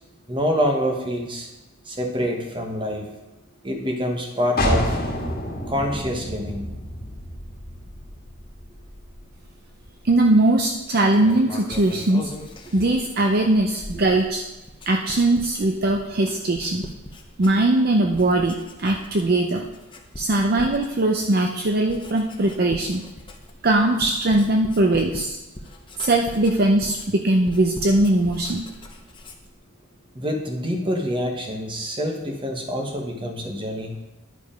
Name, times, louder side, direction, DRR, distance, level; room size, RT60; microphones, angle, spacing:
voice 1, 0.3-1.5 1.9-3.0 3.6-5.0 5.7-6.6 30.1-34.0, equal, 25° right, 2 dB, 1.2 m, -26 dB
sound 1, 4.6-10.1, left 1 dB, 45° left, 1.6 m, -29 dB
voice 2, 10.0-12.3 12.7-14.4 14.9-16.9 17.4-19.7 20.2-23.1 23.6-25.4 26.0-28.7, right 2 dB, 45° right, 2 dB, 0.6 m, -20 dB
Writing, 11.1-17.8 18.1-19.3 19.6-29.6, left 1 dB, 20° left, 0.7 m, -40 dB
10.5 x 5.0 x 5.0 m, 0.98 s
head